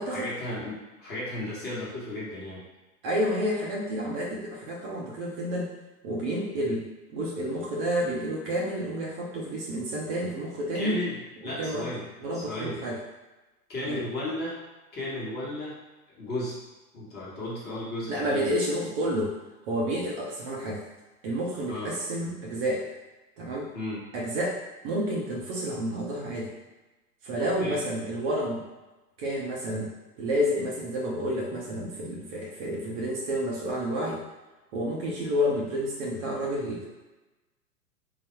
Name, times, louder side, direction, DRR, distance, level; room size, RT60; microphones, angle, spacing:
voice 1, 0.1-2.6 10.7-11.2 11.4-12.0 12.3-12.8 13.7-14.6 14.9-15.8 16.1-16.5 16.9-18.5 21.7-21.9 23.7-24.0 27.4-27.8, left 1 dB, 20° left, -7 dB, 1.2 m, -34 dB
voice 2, 3.0-5.7 6.0-11.0 11.4-11.9 12.2-13.0 13.9-14.0 18.1-19.4 19.6-20.8 21.2-22.9 23.4-23.7 24.1-24.6 24.8-26.6 27.2-28.7 29.2-34.2 34.7-36.9, equal, 35° right, -3 dB, 0.7 m, -30 dB
3.9 x 2.1 x 4.3 m, 1.1 s
hypercardioid pair, 120°, 47 cm